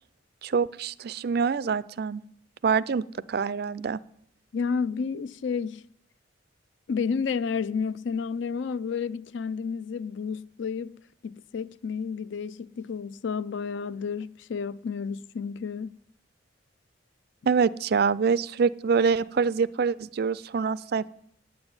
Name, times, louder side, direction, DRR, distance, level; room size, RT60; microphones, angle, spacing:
voice 1, 0.4-2.2 2.6-4.0 17.5-21.1, right 5 dB, 50° right, 0.4 m, -25 dB
voice 2, 4.5-5.8 6.9-11.0 11.2-16.0, left 5 dB, 65° left, 0.4 m, -31 dB
9.6 x 8.0 x 8.8 m
head